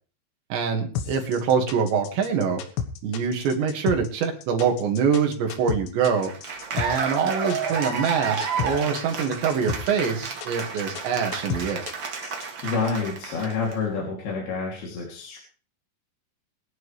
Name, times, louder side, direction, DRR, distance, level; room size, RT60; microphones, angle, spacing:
voice 1, 0.5-2.6 3.0-6.3 6.7-11.8, right 6 dB, 80° right, 2 dB, 4.3 m, -24 dB
sound 1, 1.0-12.5, left 8 dB, 80° left, 3.5 m, -32 dB
Cheering / Applause, 6.2-13.7, right 5 dB, 60° right, 1.2 m, -31 dB
voice 2, 12.3-15.4, left 4 dB, 60° left, -2 dB, 4.8 m, -28 dB
23.0 x 10.5 x 3.4 m, 0.38 s
omnidirectional pair, 5.1 m